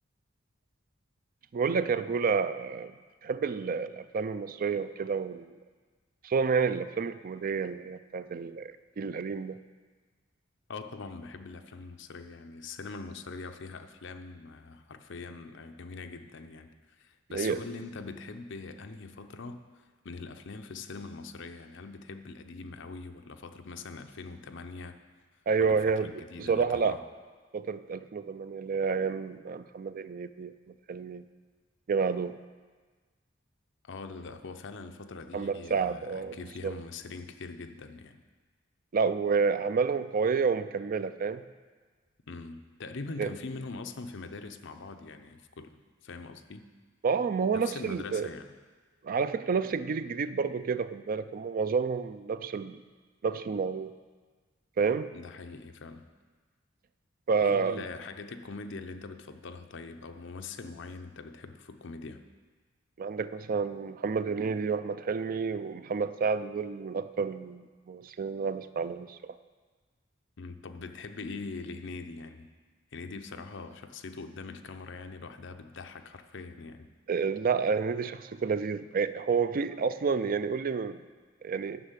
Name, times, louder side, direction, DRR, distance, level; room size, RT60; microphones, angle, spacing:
voice 1, 1.5-2.9 3.2-5.5 6.2-9.6 17.3-17.6 25.5-26.1 26.4-27.0 27.5-30.5 30.9-31.2 31.9-32.4 35.3-36.4 36.6-36.8 38.9-41.4 43.2-43.3 47.0-48.3 49.0-52.8 53.2-53.9 54.8-55.1 57.3-57.8 63.0-69.3 77.1-81.0 81.4-81.8, right 5 dB, 45° right, 13 dB, 0.4 m, -29 dB
voice 2, 10.7-25.0 25.6-27.0 33.8-38.2 42.3-46.6 47.5-48.5 55.1-56.1 57.4-62.2 70.4-72.5 72.9-76.9, left 3 dB, 65° left, 7 dB, 0.7 m, -42 dB
9.9 x 6.5 x 8.1 m, 1.4 s
head